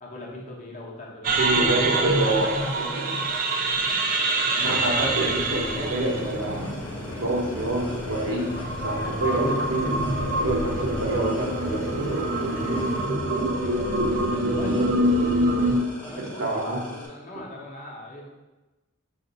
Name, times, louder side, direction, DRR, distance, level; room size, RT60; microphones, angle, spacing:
voice 1, 0.0-3.3 13.6-14.8 16.1-18.3, left 1 dB, 35° left, -3 dB, 0.8 m, -40 dB
sound 1, 1.2-15.8, right 2 dB, 40° right, 0.5 m, -26 dB
voice 2, 1.4-2.5 2.8-3.0 4.6-6.6 7.1-8.5 8.8-10.0 10.4-12.3 16.4-16.8, right 2 dB, 65° right, -1 dB, 0.9 m, -26 dB
sound 2, 2.2-17.1, left 1 dB, 5° left, 0.6 m, -41 dB
sound 3, 4.6-13.1, left 1 dB, 75° left, 0.6 m, -36 dB
5.4 x 2.5 x 3.9 m, 1.1 s
head